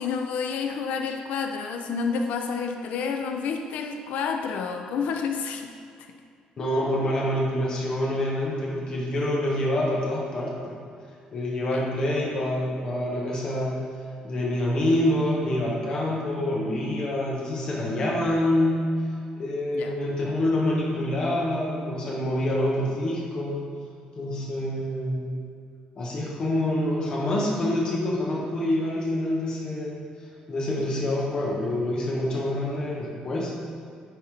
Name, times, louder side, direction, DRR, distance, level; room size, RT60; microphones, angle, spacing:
voice 1, 0.0-5.7 6.0-6.1 11.7-11.8 19.7-20.0, left 5 dB, 70° left, 4 dB, 0.5 m, -29 dB
voice 2, 6.6-10.8 11.3-13.8 14.2-19.0 19.4-23.6 24.2-25.4 26.0-30.0 30.5-33.5, left 1 dB, 35° left, -4 dB, 1.5 m, -26 dB
9.2 x 4.2 x 5.1 m, 2.3 s
cardioid pair, 175°, 3 cm